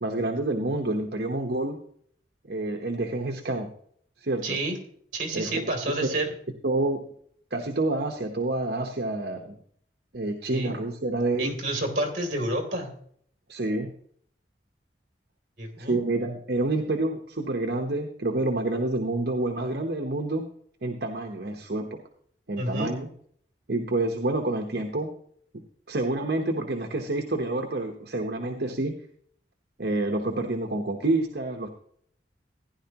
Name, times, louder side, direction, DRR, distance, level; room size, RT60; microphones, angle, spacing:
voice 1, 0.0-1.8 2.5-3.7 4.2-4.6 5.3-5.6 6.6-7.0 7.5-9.6 10.1-11.5 13.5-13.9 15.8-20.4 20.8-22.0 22.5-23.1 23.7-25.1 25.9-28.9 29.8-31.7, right 2 dB, 65° right, 3 dB, 1.0 m, -28 dB
voice 2, 4.4-4.8 5.1-6.3 10.5-10.7 11.4-12.9 15.6-16.0 22.6-22.9, right 1 dB, 45° right, 2 dB, 2.9 m, -29 dB
15.5 x 10.5 x 3.0 m, 0.62 s
head